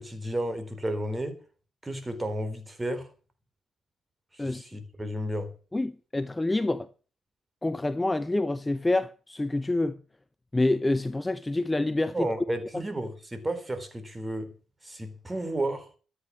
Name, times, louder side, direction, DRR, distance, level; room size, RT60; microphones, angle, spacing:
voice 1, 0.0-1.4 1.8-3.1 4.3-5.5 12.1-14.5 14.8-15.9, right 1 dB, 15° right, 4.0 m, -32 dB
voice 2, 5.7-6.9 7.6-10.0 10.5-12.3 12.7-12.8, left 2 dB, 15° left, 0.8 m, -27 dB
13.5 x 9.7 x 7.1 m
cardioid pair, 90°, 0 cm